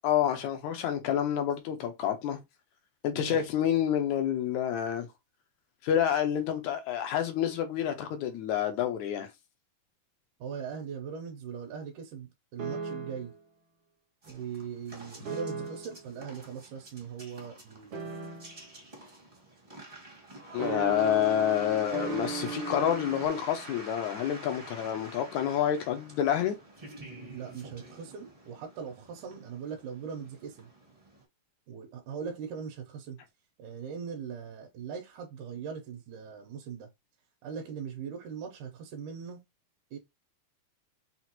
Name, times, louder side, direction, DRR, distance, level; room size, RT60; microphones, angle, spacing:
voice 1, 0.0-2.4 3.0-5.1 5.8-9.3 20.5-26.6, left 10 dB, 75° left, 2.0 m, -28 dB
voice 2, 10.4-13.3 14.3-18.0 27.3-30.7 31.7-33.2 33.6-36.9 37.4-39.4 39.9-40.0, right 7 dB, 75° right, 2.2 m, -40 dB
sound 1, 12.6-13.4 15.2-16.1 17.9-18.8 20.6-23.3, right 5 dB, 60° right, 1.4 m, -37 dB
sound 2, 14.2-31.2, right 2 dB, 25° right, 0.8 m, -48 dB
5.9 x 2.4 x 2.9 m
omnidirectional pair, 3.6 m